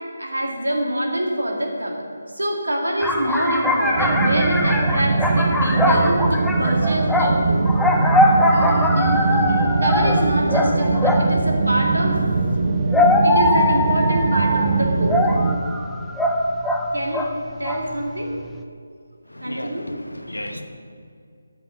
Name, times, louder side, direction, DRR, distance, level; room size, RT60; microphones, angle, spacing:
voice 1, 0.2-2.0 2.3-7.6 9.8-12.2 13.2-15.2 16.9-17.3 17.6-18.3 19.4-19.8, right 1 dB, 80° right, 0 dB, 2.0 m, -25 dB
sound 1, 3.0-11.4 12.5-17.3 17.6-18.0, left 1 dB, ahead, 0.4 m, -21 dB
sound 2, 4.0-15.6, right 3 dB, 40° right, 0.6 m, -21 dB
sound 3, 8.5-14.3, left 1 dB, 70° left, 1.0 m, -31 dB
voice 2, 19.3-20.6, left 1 dB, 90° left, 5 dB, 1.0 m, -33 dB
7.8 x 5.9 x 7.2 m, 2.3 s
figure-of-eight pair, 155°, 0 cm